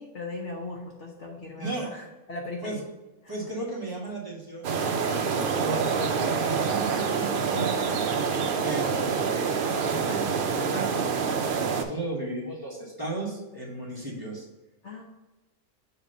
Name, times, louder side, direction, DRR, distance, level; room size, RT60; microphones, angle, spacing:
voice 1, 0.0-2.9 3.2-3.4 14.8-15.0, left 2 dB, 55° left, 0 dB, 1.1 m, -38 dB
voice 2, 1.6-1.9 2.6-2.8 3.3-8.0 8.6-9.2 9.8-10.9 11.5-14.5, right 2 dB, 15° right, -5 dB, 1.4 m, -35 dB
sound 1, 4.6-11.8, right 5 dB, 60° right, 0.6 m, -26 dB
7.2 x 3.1 x 5.4 m, 1.1 s
omnidirectional pair, 1.5 m